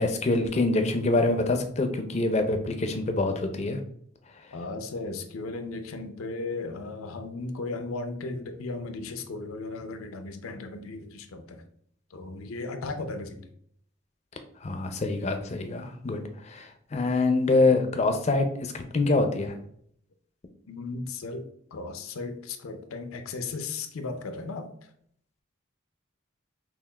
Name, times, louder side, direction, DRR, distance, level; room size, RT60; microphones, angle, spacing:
voice 1, 0.0-3.8 14.6-16.7 16.9-19.6, left 2 dB, 30° left, 0.4 m, -25 dB
voice 2, 4.5-11.6 12.1-13.5 20.7-24.7, left 3 dB, 85° left, 0.5 m, -36 dB
5.7 x 2.4 x 2.3 m
head